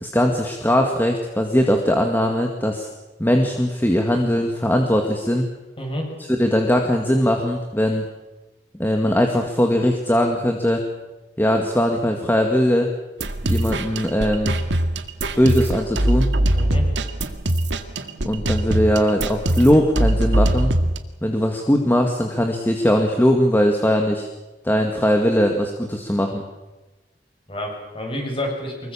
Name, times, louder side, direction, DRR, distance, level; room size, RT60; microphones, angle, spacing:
voice 1, 0.0-2.9 3.2-5.5 6.3-8.1 8.8-10.8 11.4-12.9 13.5-14.6 15.4-16.3 18.2-20.7 21.2-24.3 24.6-26.4, equal, 10° left, 2 dB, 2.0 m, -20 dB
voice 2, 5.8-6.1 16.5-16.9 27.5-28.9, left 1 dB, 30° left, 1 dB, 7.9 m, -29 dB
sound 1, 13.2-21.0, right 1 dB, 80° right, 2.0 m, -22 dB
25.0 x 22.5 x 7.4 m, 1.1 s
head